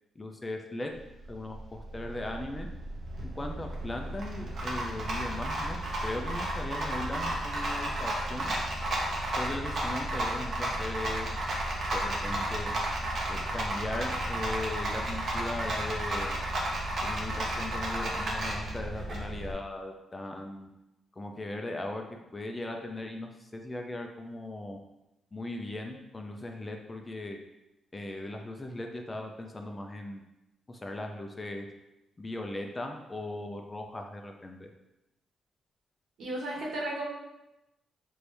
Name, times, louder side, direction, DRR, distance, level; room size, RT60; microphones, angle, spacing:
voice 1, 0.2-0.9 1.3-2.7 3.2-8.5 9.4-11.3 11.9-12.7 13.3-16.4 17.0-20.7 21.2-24.8 25.3-27.4 27.9-30.2 30.7-31.7 32.2-34.7, left 1 dB, 20° left, 3 dB, 0.4 m, -38 dB
Rattle, 0.9-19.5, right 1 dB, 50° right, 0.9 m, -33 dB
voice 2, 36.2-37.0, right 1 dB, 75° right, -3 dB, 1.2 m, -34 dB
4.6 x 2.7 x 3.3 m, 0.95 s
cardioid pair, 115°, 0 cm